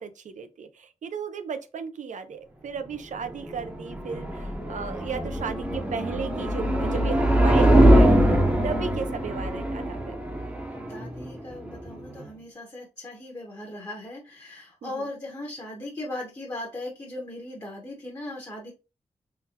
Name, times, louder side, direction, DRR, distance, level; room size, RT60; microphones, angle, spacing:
voice 1, 0.0-8.1 8.6-10.2 14.8-15.1, right 6 dB, 85° right, 0.5 m, -35 dB
sound 1, 3.2-12.2, right 1 dB, 10° right, 0.7 m, -22 dB
voice 2, 10.4-18.7, left 1 dB, 25° left, 0.8 m, -38 dB
3.7 x 2.1 x 2.8 m
wide cardioid pair, 130°, 12 cm